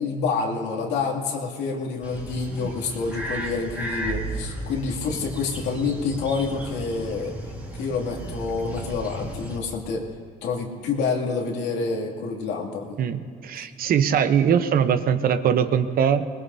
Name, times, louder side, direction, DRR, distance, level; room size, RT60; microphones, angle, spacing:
voice 1, 0.0-7.4 7.7-10.0 10.4-13.0, left 4 dB, 90° left, -1 dB, 2.5 m, -28 dB
sound 1, 2.0-9.6, right 1 dB, 10° right, 2.4 m, -34 dB
voice 2, 13.0-16.3, right 8 dB, 60° right, 10 dB, 0.9 m, -21 dB
23.5 x 20.5 x 2.8 m, 2.2 s
cardioid pair, 110°, 17 cm